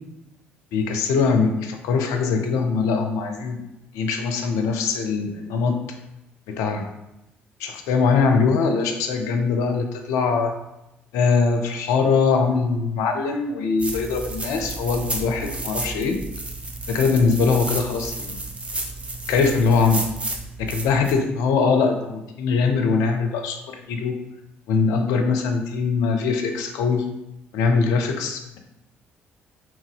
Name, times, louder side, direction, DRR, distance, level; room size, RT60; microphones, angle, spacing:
voice 1, 0.7-3.6 3.9-5.8 6.5-6.9 7.6-10.5 11.1-16.2 16.9-18.5 19.3-20.1 20.6-24.2 24.7-27.0 27.5-28.6, left 5 dB, 70° left, 5 dB, 0.5 m, -22 dB
sound 1, 13.8-21.1, right 2 dB, 20° right, 0.7 m, -32 dB
2.9 x 2.7 x 3.7 m, 0.91 s
hypercardioid pair, 50°, 6 cm